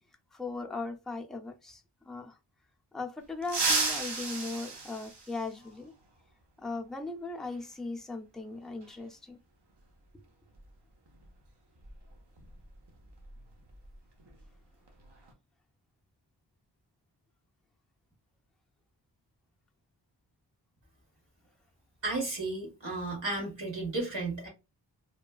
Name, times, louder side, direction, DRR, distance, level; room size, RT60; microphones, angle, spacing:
voice 1, 0.3-2.4 2.9-5.9 6.6-9.4, left 3 dB, ahead, 0.4 m, -38 dB
sound 1, 3.4-5.8 7.5-7.6 8.8-8.9 10.5-10.7 11.1-11.3 11.8-13.9 14.2-14.5 14.9-15.3, right 3 dB, 65° right, 0.9 m, -34 dB
voice 2, 22.0-24.5, right 2 dB, 80° right, 1.6 m, -33 dB
3.1 x 2.2 x 2.3 m
wide cardioid pair, 50°, 44 cm